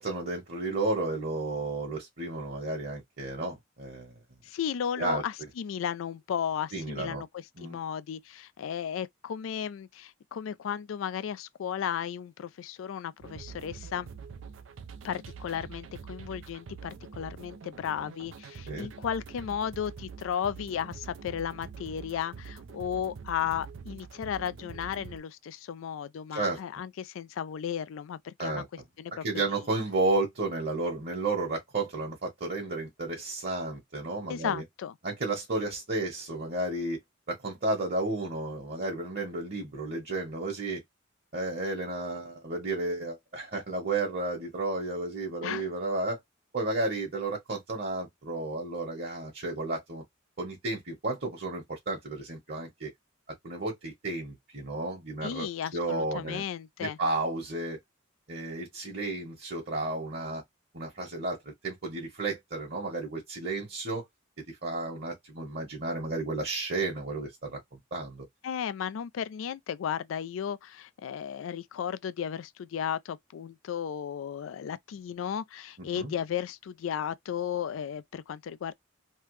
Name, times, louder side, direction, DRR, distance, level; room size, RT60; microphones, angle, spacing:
voice 1, 0.0-4.1 5.0-5.2 6.7-7.2 7.6-7.8 18.7-18.9 26.3-26.6 28.4-28.6 29.2-34.6 35.0-37.0 37.3-40.8 41.3-46.2 46.5-50.0 50.4-52.9 53.4-55.5 55.7-56.4 56.8-57.8 58.3-60.4 60.7-64.1 64.5-67.6 67.9-68.2 75.9-76.1, right 2 dB, 50° right, 1.2 m, -32 dB
voice 2, 4.4-14.1 15.0-28.6 29.0-29.2 34.3-34.9 45.4-45.7 55.2-57.0 68.4-78.7, left 8 dB, 80° left, 0.3 m, -34 dB
sound 1, 13.2-25.2, right 5 dB, 75° right, 0.4 m, -45 dB
3.3 x 2.0 x 3.1 m
head